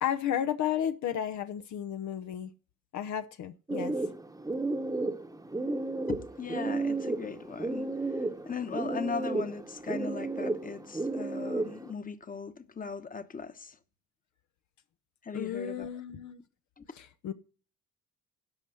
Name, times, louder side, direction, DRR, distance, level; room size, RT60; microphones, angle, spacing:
voice 1, 0.0-2.5 2.9-3.9 15.3-16.4 16.9-17.3, left 10 dB, 70° left, 0.8 m, -33 dB
sound 1, 3.7-11.9, right 2 dB, 10° right, 1.0 m, -33 dB
voice 2, 6.1-13.8 15.2-15.9 16.8-16.9, left 5 dB, 30° left, 1.1 m, -39 dB
11.5 x 5.6 x 6.3 m
cardioid pair, 90°, 30 cm